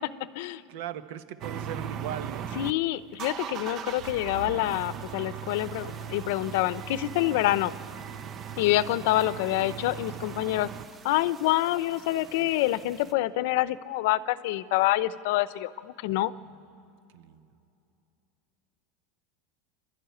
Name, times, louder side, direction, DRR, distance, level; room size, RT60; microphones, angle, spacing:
voice 1, 0.7-2.5 7.3-7.7 16.4-17.5, right 10 dB, 70° right, 10 dB, 1.2 m, -40 dB
sound 1, 1.4-2.7 3.1-10.8, right 8 dB, 35° right, 0.6 m, -38 dB
voice 2, 2.6-7.7 8.6-10.7 11.0-16.3, left 15 dB, 65° left, 16 dB, 0.7 m, -26 dB
sound 2, 4.0-13.1, right 4 dB, 20° right, 1.1 m, -51 dB
26.0 x 12.5 x 9.5 m, 2.7 s
supercardioid pair, 155°, 0 cm